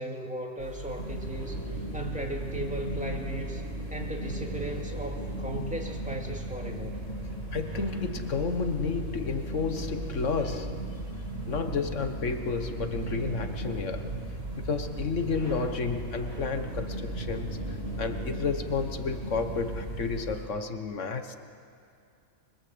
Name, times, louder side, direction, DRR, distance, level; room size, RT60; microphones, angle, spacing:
voice 1, 0.0-3.6 3.9-7.0, right 1 dB, 5° right, 1 dB, 2.6 m, -37 dB
sound 1, 0.6-20.4, right 1 dB, 75° right, 6.9 m, -40 dB
sound 2, 1.0-20.4, right 2 dB, 55° right, 2.4 m, -38 dB
voice 2, 7.5-10.8 11.5-14.1 14.5-21.4, left 5 dB, 60° left, 7 dB, 1.6 m, -31 dB
24.5 x 23.5 x 8.0 m, 2.4 s
omnidirectional pair, 1.5 m